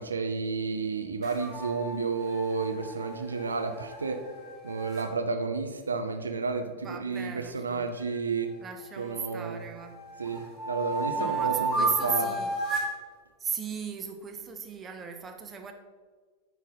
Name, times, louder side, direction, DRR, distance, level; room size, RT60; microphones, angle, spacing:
voice 1, 0.0-4.2 4.6-8.5 9.0-9.6 10.2-12.4, right 4 dB, 75° right, 6 dB, 0.5 m, -31 dB
sound 1, 1.2-5.1 8.0-9.3 9.8-13.0, right 2 dB, 10° left, 2.2 m, -33 dB
voice 2, 6.8-7.9 8.6-9.9 11.1-12.6 13.4-15.7, right 6 dB, 20° right, 4 dB, 0.8 m, -36 dB
9.3 x 3.2 x 5.3 m, 1.5 s
figure-of-eight pair, 90°, 0 cm